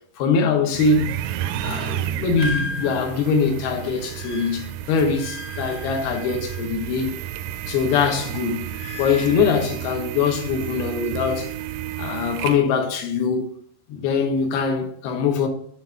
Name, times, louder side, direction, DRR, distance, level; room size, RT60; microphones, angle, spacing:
voice 1, 0.2-1.1 1.6-7.1 7.7-8.7 9.0-11.5 12.0-13.5 13.9-15.5, left 5 dB, 75° left, 3.0 m, -22 dB
sound 1, 0.7-12.6, right 11 dB, 80° right, 2.3 m, -32 dB
sound 2, 2.4-7.1 7.4-9.4, left 3 dB, 55° left, 2.1 m, -36 dB
8.5 x 4.1 x 5.7 m
omnidirectional pair, 4.6 m